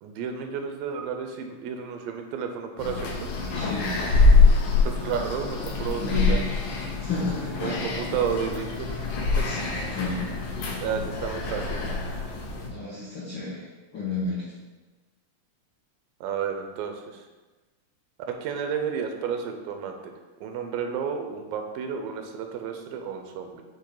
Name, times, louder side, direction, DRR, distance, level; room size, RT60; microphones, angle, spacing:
voice 1, 0.0-3.3 4.8-6.4 7.6-8.9 9.4-9.5 10.8-11.8 12.1-12.3 16.2-17.3 18.3-20.1 20.4-23.6, right 7 dB, 85° right, 5 dB, 2.4 m, -32 dB
sound 1, 2.8-12.7, left 3 dB, 90° left, 2.7 m, -24 dB
voice 2, 3.5-3.9 6.0-6.4 7.0-7.8 9.4-10.2 12.7-13.6 13.9-14.5, left 3 dB, 60° left, -9 dB, 1.2 m, -31 dB
8.2 x 3.5 x 3.9 m, 1.2 s
omnidirectional pair, 3.9 m